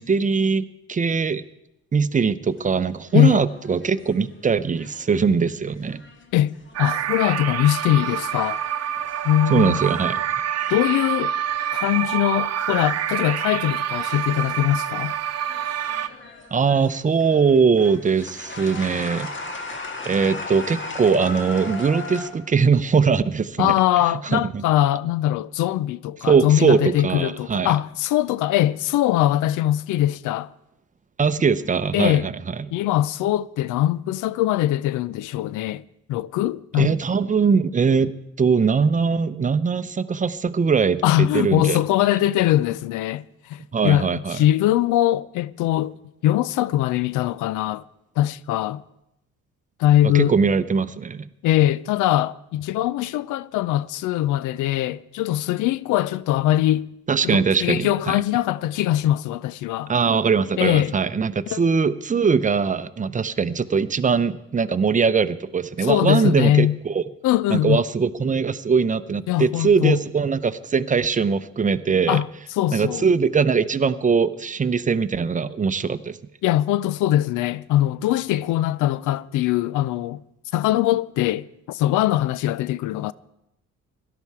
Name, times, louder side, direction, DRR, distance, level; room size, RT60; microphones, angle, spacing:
voice 1, 0.0-1.4 1.9-6.0 9.5-10.2 16.5-19.3 20.0-23.8 24.3-24.6 26.2-27.7 31.2-32.6 36.8-38.1 38.4-41.8 43.7-44.4 50.1-51.3 57.1-58.2 59.9-67.0 67.5-72.2 72.7-76.2, right 5 dB, 25° right, 0.7 m, -21 dB
sound 1, 2.5-7.8 8.2-11.0 11.3-11.8 12.3-15.0 15.4-22.3, left 2 dB, 40° left, 1.8 m, -38 dB
voice 2, 3.1-3.4 6.3-8.6 9.2-9.8 10.7-11.3 11.7-15.1 23.6-30.5 31.9-32.3 32.7-35.8 36.1-37.0 41.0-46.0 46.2-47.8 48.2-48.8 49.8-50.3 51.4-56.9 57.2-59.9 60.6-60.9 61.5-61.6 65.8-66.8 67.2-67.8 69.3-70.0 72.1-72.3 72.5-73.1 76.4-80.2 80.5-83.1, left 13 dB, 85° left, 0.5 m, -21 dB
sound 2, 6.7-16.1, right 10 dB, 55° right, 0.8 m, -27 dB
17.0 x 12.0 x 4.7 m
cardioid pair, 90°, 30 cm